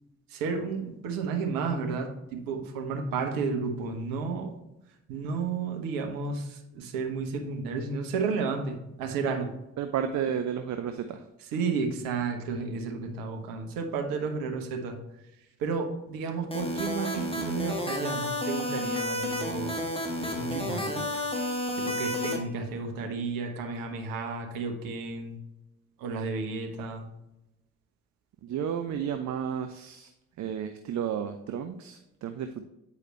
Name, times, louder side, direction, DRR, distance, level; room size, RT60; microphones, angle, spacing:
voice 1, 0.3-4.5 5.1-9.5 11.5-15.0 15.6-19.9 20.2-21.1 21.8-25.4 26.0-27.1, right 4 dB, 70° right, 3 dB, 1.1 m, -32 dB
voice 2, 9.8-11.2 28.4-30.1 30.4-32.6, right 8 dB, 50° right, 7 dB, 0.6 m, -32 dB
sound 1, 16.5-22.4, left 1 dB, 15° left, 1.7 m, -31 dB
8.4 x 4.9 x 3.2 m, 0.91 s
hypercardioid pair, 45°, 35 cm